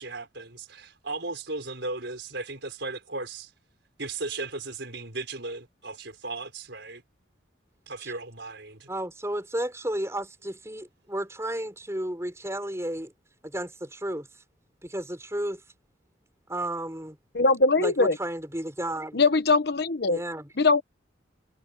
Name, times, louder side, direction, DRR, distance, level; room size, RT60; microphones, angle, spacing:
voice 1, 0.0-3.5 4.0-7.0 7.9-8.9, right 3 dB, 60° right, 5.3 m, -36 dB
voice 2, 8.9-13.1 13.4-14.3 14.8-15.6 16.5-17.2 17.8-19.2 20.1-20.5, right 1 dB, 15° right, 6.5 m, -32 dB
voice 3, 17.3-18.1 19.1-20.2 20.6-20.8, left 3 dB, 55° left, 1.1 m, -21 dB
head